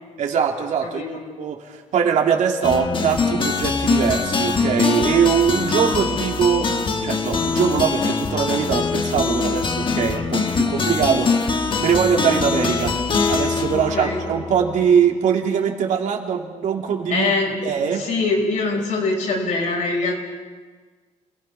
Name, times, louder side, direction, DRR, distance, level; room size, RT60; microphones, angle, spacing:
voice 1, 0.2-6.7 7.0-13.0 13.3-17.3 17.6-18.0, right 7 dB, 70° right, 1 dB, 2.8 m, -22 dB
voice 2, 0.8-1.2 13.7-14.2 17.1-20.1, left 3 dB, 70° left, 1 dB, 5.5 m, -23 dB
sound 1, 2.6-14.9, left 4 dB, 40° left, 1.5 m, -23 dB
28.0 x 19.0 x 5.9 m, 1.4 s
cardioid pair, 135°, 13 cm